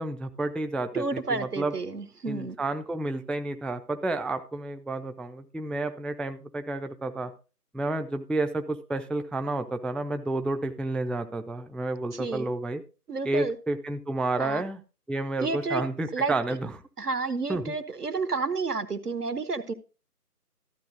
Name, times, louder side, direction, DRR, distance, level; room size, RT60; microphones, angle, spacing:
voice 1, 0.0-1.7 2.3-7.3 7.7-12.8 13.2-14.8 15.1-16.7 17.5-17.7, right 2 dB, ahead, 8 dB, 0.4 m, -30 dB
voice 2, 0.9-2.6 12.1-12.5 13.1-13.6 14.4-14.6 15.4-15.8 16.1-16.3 17.0-19.7, right 4 dB, 70° right, 13 dB, 1.0 m, -30 dB
13.0 x 6.8 x 3.8 m, 0.34 s
figure-of-eight pair, 180°, 48 cm